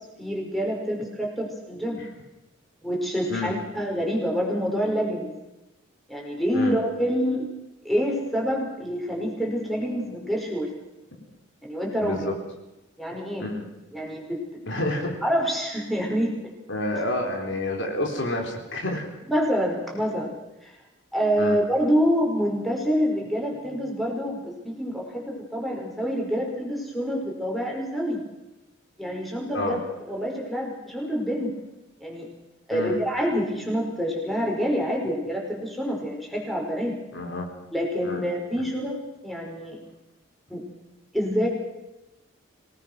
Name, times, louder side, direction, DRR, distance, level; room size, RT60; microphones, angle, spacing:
voice 1, 0.2-2.0 2.8-5.3 6.1-7.5 7.8-10.7 11.6-12.3 13.0-13.5 13.9-14.6 15.2-16.3 19.3-20.7 21.1-28.2 29.0-29.8 30.0-31.5 32.0-32.3 32.7-37.0 37.7-39.8 40.5-40.6 41.1-41.5, equal, ahead, -1 dB, 5.1 m, -27 dB
voice 2, 12.0-12.3 13.4-13.7 14.7-15.1 16.7-19.1 21.4-21.6 29.5-29.8 32.7-33.0 37.1-37.5 38.0-38.2 38.6-38.7, left 1 dB, 60° left, 1 dB, 4.2 m, -29 dB
26.5 x 18.5 x 6.3 m, 1.0 s
head